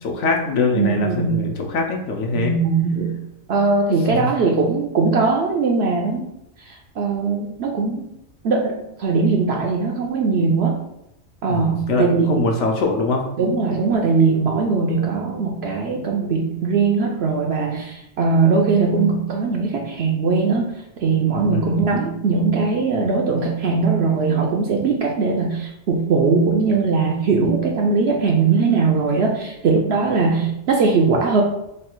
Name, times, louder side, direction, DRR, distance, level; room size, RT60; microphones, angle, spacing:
voice 1, 0.0-2.6 4.2-4.3 11.5-13.2 21.5-21.9, left 3 dB, 65° left, 1 dB, 0.9 m, -23 dB
voice 2, 0.7-1.4 2.3-3.1 3.5-6.3 6.7-8.0 8.4-8.7 9.0-10.8 11.4-12.4 13.4-20.7 21.0-31.4, right 4 dB, 65° right, 0 dB, 0.7 m, -20 dB
3.2 x 2.4 x 4.3 m, 0.84 s
omnidirectional pair, 1.4 m